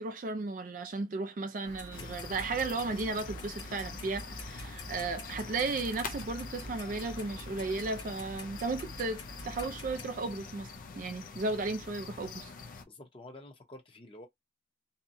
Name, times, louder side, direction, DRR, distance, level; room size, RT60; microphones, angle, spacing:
voice 1, 0.0-10.7 11.0-12.5, right 3 dB, 45° right, 0.4 m, -35 dB
Clock, 1.6-10.0, equal, 70° left, 1.2 m, -45 dB
sound 1, 1.9-12.8, left 5 dB, 45° left, 0.4 m, -46 dB
voice 2, 12.8-14.3, left 1 dB, 30° left, 0.8 m, -49 dB
2.7 x 2.2 x 2.6 m
head